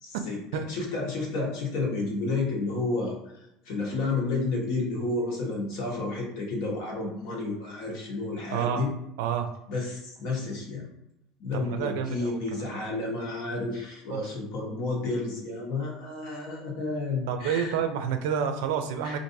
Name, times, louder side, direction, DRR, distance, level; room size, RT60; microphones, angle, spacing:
voice 1, 0.0-0.4 0.7-3.2 3.6-8.9 9.7-10.8 11.4-17.7 19.0-19.2, left 3 dB, 55° left, -2 dB, 1.2 m, -31 dB
voice 2, 8.5-8.8 9.2-9.5 11.5-12.7 14.1-14.2 17.3-19.2, right 8 dB, 80° right, 7 dB, 0.5 m, -29 dB
4.6 x 2.5 x 2.7 m, 0.85 s
cardioid pair, 175°, 0 cm